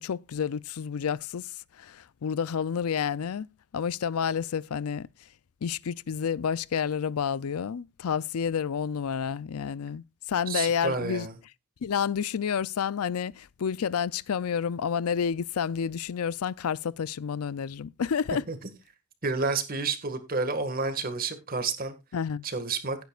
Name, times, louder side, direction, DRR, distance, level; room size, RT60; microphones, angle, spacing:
voice 1, 0.0-1.5 1.8-3.5 3.7-5.1 5.6-11.3 11.8-18.4 22.1-22.4, left 7 dB, 90° left, 0.4 m, -29 dB
voice 2, 10.5-11.3 18.5-18.6 19.2-21.9 22.4-23.0, right 4 dB, 40° right, 1.8 m, -30 dB
17.0 x 9.3 x 2.4 m
head